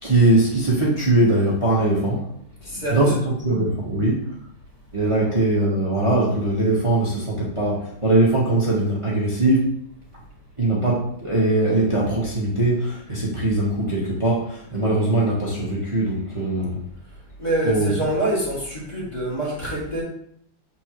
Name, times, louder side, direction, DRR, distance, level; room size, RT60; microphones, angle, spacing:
voice 1, 0.0-2.3 2.7-4.3 4.9-9.7 10.6-16.8 17.6-17.9, right 2 dB, 20° right, -6 dB, 1.2 m, -21 dB
voice 2, 2.6-3.3 5.2-5.3 17.4-20.0, right 1 dB, 20° left, -6 dB, 2.4 m, -26 dB
7.5 x 4.4 x 3.1 m, 0.69 s
omnidirectional pair, 2.2 m